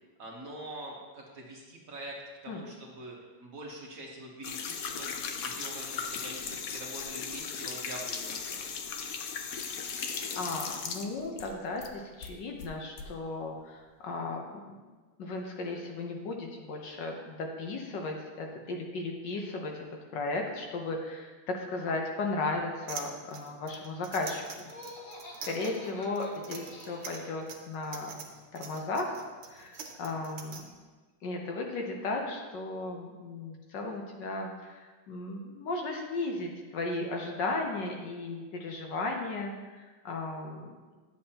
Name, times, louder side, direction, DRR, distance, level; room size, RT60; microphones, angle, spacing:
voice 1, 0.2-2.2 2.4-5.1 5.4-8.7, right 1 dB, 45° right, -2 dB, 1.5 m, -44 dB
sound 1, 4.4-11.9 12.2-13.1, left 6 dB, 85° left, 0.7 m, -37 dB
voice 2, 10.4-14.8 15.2-19.8 20.1-24.5 25.4-28.2 28.5-29.2 29.5-30.6 31.2-40.7, left 2 dB, 65° left, 1 dB, 1.5 m, -35 dB
sound 2, 22.9-30.6, right 6 dB, 85° right, 1.7 m, -44 dB
Laughter, 24.6-27.5, left 1 dB, 45° left, 1.6 m, -48 dB
10.5 x 7.7 x 2.9 m, 1.3 s
omnidirectional pair, 2.3 m